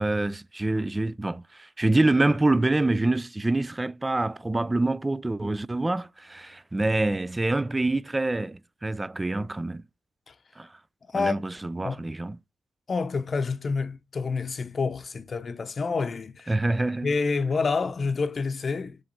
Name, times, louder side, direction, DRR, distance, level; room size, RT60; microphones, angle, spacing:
voice 1, 0.0-9.8 10.6-10.7 11.1-12.4 16.5-17.1, right 2 dB, 25° right, 0.4 m, -26 dB
voice 2, 12.9-16.5 17.0-19.0, left 4 dB, 50° left, 0.8 m, -28 dB
7.2 x 3.2 x 4.1 m
hypercardioid pair, 40°, 0 cm